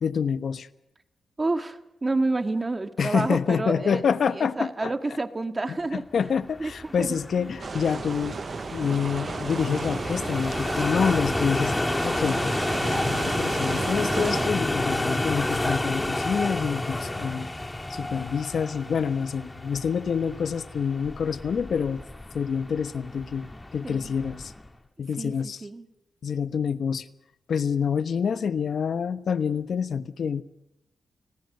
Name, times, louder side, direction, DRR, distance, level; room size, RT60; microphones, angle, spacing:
voice 1, 0.0-0.7 3.0-4.9 5.9-8.4 8.7-17.5 17.9-22.0 22.3-24.5 25.0-25.6 26.2-27.1 27.5-30.4, left 6 dB, 70° left, 12 dB, 1.1 m, -27 dB
voice 2, 1.4-6.3 6.6-7.5 11.3-11.8 23.8-24.1 25.2-25.9, right 2 dB, 30° right, 8 dB, 1.9 m, -30 dB
sound 1, 6.4-24.7, left 1 dB, 15° left, 2.0 m, -30 dB
sound 2, 7.6-14.5, right 5 dB, 50° right, 0.8 m, -34 dB
29.5 x 20.0 x 6.7 m, 0.86 s
cardioid pair, 85°, 0 cm